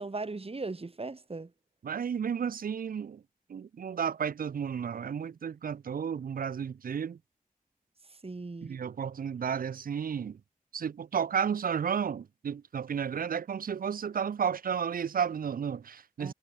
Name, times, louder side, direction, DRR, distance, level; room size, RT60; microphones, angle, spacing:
voice 1, 0.0-1.5 8.2-8.7 16.2-16.3, right 3 dB, 40° right, 2.3 m, -38 dB
voice 2, 1.8-3.2 3.5-7.2 8.6-10.4 10.7-16.3, right 7 dB, 85° right, 0.5 m, -32 dB
wide cardioid pair, 65°, 14 cm